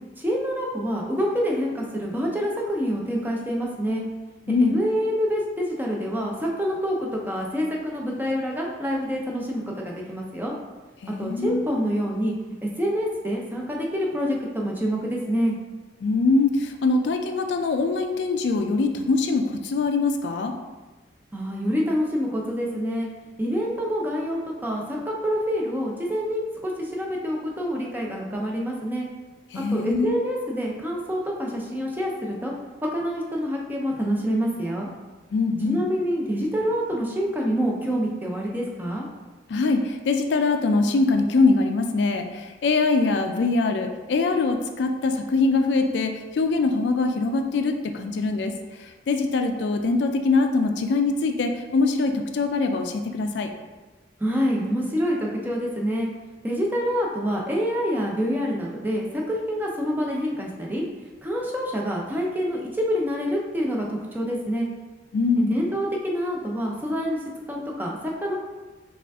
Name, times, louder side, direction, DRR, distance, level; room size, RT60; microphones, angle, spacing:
voice 1, 0.2-4.1 4.6-10.5 11.2-12.3 12.6-15.5 21.3-23.1 23.4-29.1 29.5-32.5 32.8-34.9 35.6-39.1 54.2-56.1 56.4-60.8 61.2-64.7 65.4-67.2 67.5-68.4, equal, 10° right, -2 dB, 0.5 m, -26 dB
voice 2, 4.5-4.8 11.0-11.6 16.0-20.5 29.5-30.2 35.3-35.8 39.5-53.5 65.1-65.6, left 3 dB, 70° left, 6 dB, 0.4 m, -23 dB
4.9 x 2.4 x 3.4 m, 1.2 s
head